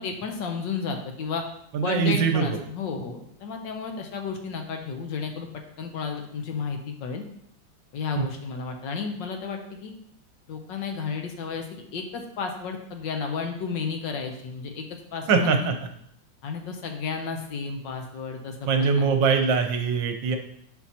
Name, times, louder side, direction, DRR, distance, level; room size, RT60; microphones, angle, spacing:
voice 1, 0.0-1.4 1.8-5.5 5.8-7.2 7.9-9.9 10.5-14.9 15.1-15.7 16.4-19.1, left 5 dB, 70° left, 4 dB, 1.4 m, -32 dB
voice 2, 1.7-2.6 8.2-8.3 15.3-15.7 18.7-20.4, right 6 dB, 70° right, 6 dB, 1.3 m, -22 dB
10.5 x 4.6 x 2.8 m, 0.71 s
omnidirectional pair, 2.2 m